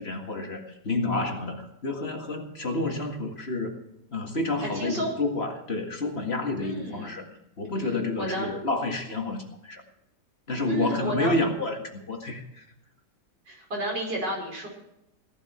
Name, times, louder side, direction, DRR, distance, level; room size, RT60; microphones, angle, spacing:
voice 1, 0.0-3.8 4.1-7.3 7.6-9.8 10.5-12.7, left 2 dB, 40° left, 2 dB, 2.1 m, -29 dB
voice 2, 4.6-5.1 6.6-7.2 7.8-8.5 10.7-11.3 13.5-14.7, right 1 dB, 85° right, -1 dB, 5.8 m, -31 dB
17.5 x 12.0 x 4.4 m, 0.84 s
omnidirectional pair, 1.8 m